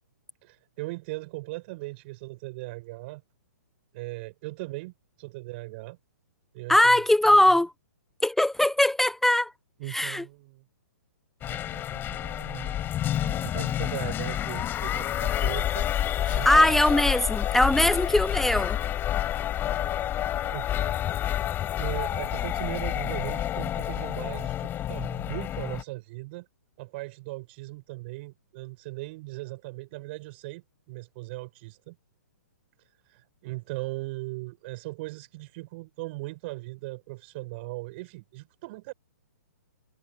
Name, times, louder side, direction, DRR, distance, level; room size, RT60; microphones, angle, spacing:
voice 1, 0.4-3.2 3.9-6.0 6.5-7.0 9.8-10.7 11.4-15.9 16.3-16.8 19.7-21.1 21.8-26.5 26.8-32.0 33.1-38.9, right 22 dB, 40° right, 7.8 m, -39 dB
voice 2, 6.7-7.7 8.2-9.5 9.9-10.2 16.3-18.8, left 1 dB, 5° left, 0.6 m, -21 dB
sound 1, 11.4-25.8, left 12 dB, 20° left, 6.3 m, -29 dB
hypercardioid pair, 130°, 9 cm